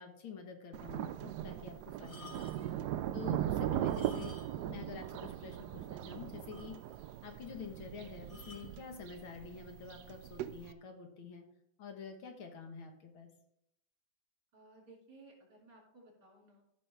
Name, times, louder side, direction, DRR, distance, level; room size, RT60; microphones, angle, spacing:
voice 1, 0.0-2.4 3.1-4.3 4.7-6.8 7.2-11.5 11.8-13.3, left 5 dB, 80° left, 4 dB, 2.1 m, -48 dB
Thunder, 0.7-10.7, right 12 dB, 80° right, 0.9 m, -39 dB
sound 1, 2.0-2.8 3.8-4.8 5.0-5.1 5.7-5.8 6.0-6.1 6.5-7.1 8.3-8.8 9.6-9.8, left 2 dB, 35° left, 0.9 m, -54 dB
voice 2, 2.6-3.0 14.5-16.6, right 2 dB, 50° right, -2 dB, 3.6 m, -58 dB
14.0 x 6.2 x 3.4 m, 0.76 s
omnidirectional pair, 2.2 m